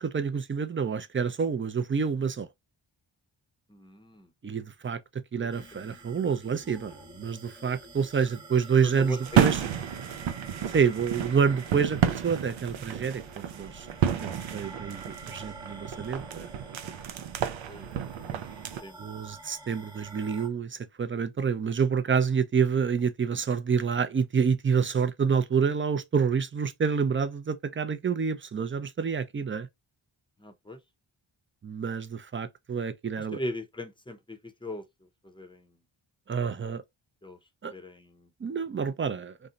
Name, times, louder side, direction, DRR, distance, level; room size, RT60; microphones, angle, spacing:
voice 1, 0.0-2.5 4.4-5.0 5.3-9.6 10.7-13.9 14.2-16.5 19.0-29.7 31.6-33.4 36.3-36.8 37.6-37.7 38.4-39.5, right 6 dB, 25° right, 0.4 m, -28 dB
voice 2, 3.7-4.3 5.4-5.5 8.8-9.5 10.6-10.7 17.7-18.4 18.8-19.0 30.4-30.8 33.2-34.8 35.2-35.7 37.2-37.4 37.7-38.3, left 1 dB, 10° left, 0.7 m, -39 dB
sound 1, 5.5-20.5, right 2 dB, 10° right, 1.2 m, -48 dB
sound 2, 9.2-18.8, right 9 dB, 70° right, 0.6 m, -30 dB
2.6 x 2.1 x 3.7 m
cardioid pair, 55°, 49 cm